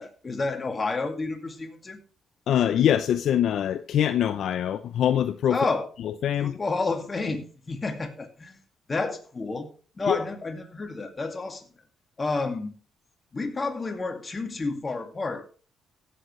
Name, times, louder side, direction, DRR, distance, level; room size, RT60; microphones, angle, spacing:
voice 1, 0.0-2.0 5.5-5.9 6.4-8.6 8.9-9.7 10.0-11.7 12.2-12.7 13.3-15.5, left 3 dB, 30° left, 2.2 m, -30 dB
voice 2, 2.5-5.6 6.2-6.6 10.1-10.2, left 10 dB, 70° left, 0.6 m, -23 dB
16.0 x 7.8 x 3.2 m
cardioid pair, 90°, 0 cm